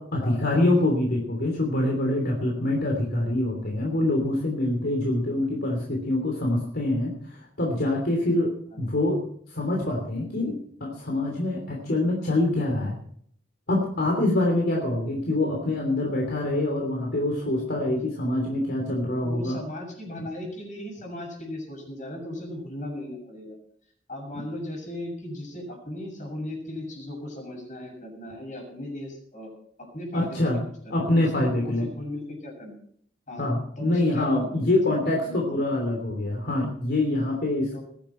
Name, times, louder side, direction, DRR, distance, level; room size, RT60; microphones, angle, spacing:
voice 1, 0.0-8.5 8.8-9.2 9.5-13.0 13.7-19.6 30.1-30.6 30.9-31.9 33.4-37.8, left 1 dB, 60° left, 1 dB, 3.2 m, -25 dB
voice 2, 19.2-23.5 24.1-29.5 29.8-30.6 30.8-32.7 33.3-33.5 33.8-35.0 35.2-35.4 37.7-37.8, left 1 dB, 45° left, 2 dB, 7.0 m, -37 dB
20.5 x 11.0 x 4.5 m, 0.63 s
head